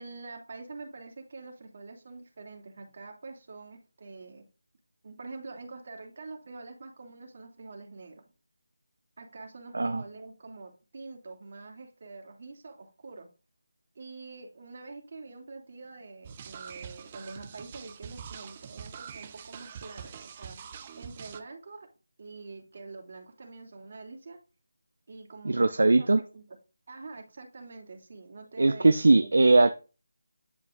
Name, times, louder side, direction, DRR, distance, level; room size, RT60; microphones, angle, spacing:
voice 1, 0.0-4.4 5.0-8.3 9.2-13.3 13.9-20.6 21.0-21.9 22.2-24.4 25.1-26.4 26.9-29.4, right 3 dB, 45° right, 2.9 m, -45 dB
sound 1, 16.2-21.4, right 7 dB, 25° right, 0.8 m, -44 dB
voice 2, 25.4-26.2 28.6-29.8, right 3 dB, 65° right, 0.7 m, -20 dB
11.0 x 4.9 x 3.8 m
figure-of-eight pair, 160°, 0 cm